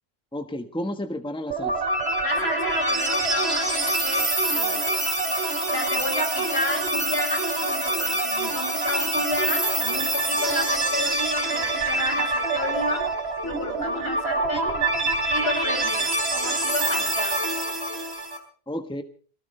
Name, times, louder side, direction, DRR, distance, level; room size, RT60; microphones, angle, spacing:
voice 1, 0.3-1.7 18.7-19.0, left 1 dB, 5° left, 6 dB, 1.4 m, -31 dB
sound 1, 1.5-18.4, right 2 dB, 85° right, 4.3 m, -25 dB
voice 2, 2.2-4.9 5.7-13.1 13.4-14.8 15.3-17.4, left 1 dB, 75° left, 5 dB, 6.8 m, -31 dB
22.5 x 17.5 x 3.3 m, 0.42 s
omnidirectional pair, 1.1 m